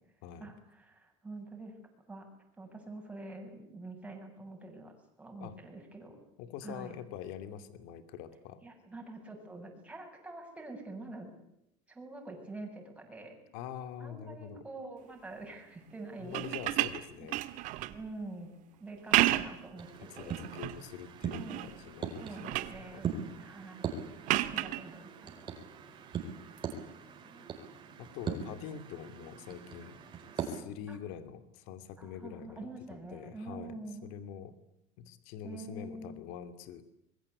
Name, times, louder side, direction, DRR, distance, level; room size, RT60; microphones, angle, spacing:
voice 1, 0.4-1.7 2.1-2.3 2.6-4.9 5.2-6.2 6.6-7.0 8.6-11.3 11.9-13.4 14.0-17.1 17.9-18.5 18.8-20.3 21.3-21.8 22.2-23.9 24.5-25.5 26.8-27.5 30.9-31.0 32.0-34.1 35.4-36.2, right 2 dB, 10° right, 2 dB, 7.6 m, -46 dB
voice 2, 6.4-8.6 13.5-14.6 16.2-17.4 20.0-23.2 28.0-30.0 30.4-33.8 34.0-34.5 35.0-36.8, left 9 dB, 70° left, 10 dB, 2.6 m, -45 dB
sound 1, 16.2-18.0 18.9-19.7 20.2-20.8 21.3-21.8 22.1-22.8 24.3-24.8 26.6-26.7, right 17 dB, 55° right, 1.9 m, -31 dB
sound 2, 19.8-30.6, right 6 dB, 30° right, 4.6 m, -41 dB
26.0 x 22.5 x 8.4 m, 0.82 s
cardioid pair, 145°, 15 cm